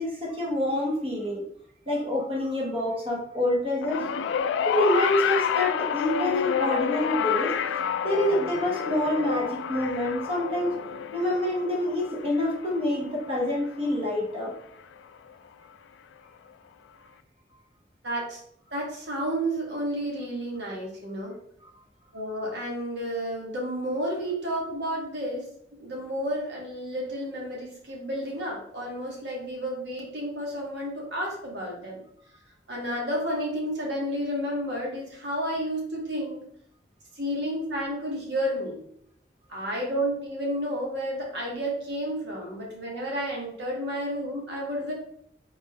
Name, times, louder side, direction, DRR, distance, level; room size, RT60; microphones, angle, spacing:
voice 1, 0.0-1.4 1.9-4.0 4.6-10.7 11.1-14.5, left 1 dB, 30° right, -3 dB, 1.1 m, -27 dB
sound 1, 3.8-14.3 15.3-15.4, left 7 dB, 90° left, 0.3 m, -29 dB
voice 2, 18.0-18.4 18.7-21.3 22.1-25.5 25.8-32.0 32.7-36.4 37.2-38.8 39.5-44.9, equal, 70° right, -3 dB, 1.6 m, -31 dB
4.4 x 4.1 x 3.0 m, 0.69 s
head